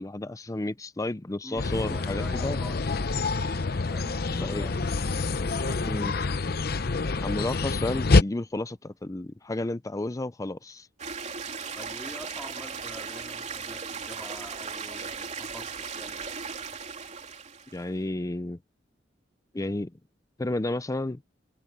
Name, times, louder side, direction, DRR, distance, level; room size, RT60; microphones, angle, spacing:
voice 1, 0.0-2.6 4.4-4.7 5.8-6.2 7.2-10.9 17.7-18.6 19.5-19.9 20.4-21.2, left 2 dB, 20° left, 0.5 m, -32 dB
voice 2, 1.4-3.1 3.9-6.3 11.7-16.3, equal, ahead, 2.3 m, -46 dB
sound 1, 1.6-8.2, left 3 dB, 60° left, 0.8 m, -26 dB
sound 2, 11.0-17.8, right 5 dB, 40° right, 3.3 m, -37 dB
head